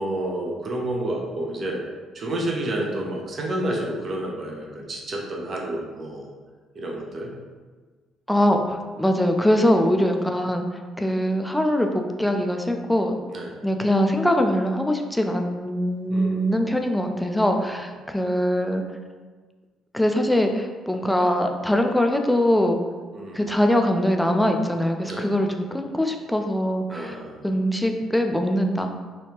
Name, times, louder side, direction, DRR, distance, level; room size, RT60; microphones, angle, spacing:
voice 1, 0.0-1.8 2.1-6.3 6.8-7.3 9.6-9.8 13.3-13.6 16.1-16.6 17.4-17.5 23.1-23.5 25.0-25.3 26.9-27.5, right 1 dB, 45° right, -1 dB, 0.6 m, -30 dB
voice 2, 8.3-13.2 13.6-18.8 19.9-22.8 23.3-27.2 27.4-28.9, equal, 5° left, 4 dB, 0.4 m, -22 dB
3.0 x 2.4 x 3.0 m, 1.4 s
figure-of-eight pair, 45°, 0 cm